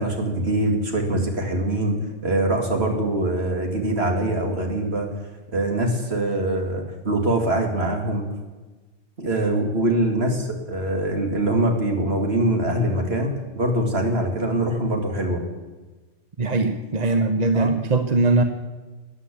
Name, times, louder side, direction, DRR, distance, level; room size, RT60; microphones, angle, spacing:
voice 1, 0.0-2.0 2.2-5.1 5.5-8.2 9.2-15.4 17.5-17.7, right 1 dB, 60° right, 3 dB, 2.6 m, -23 dB
voice 2, 16.4-18.4, right 3 dB, 40° right, 8 dB, 1.0 m, -21 dB
13.5 x 9.7 x 8.5 m, 1.3 s
omnidirectional pair, 1.2 m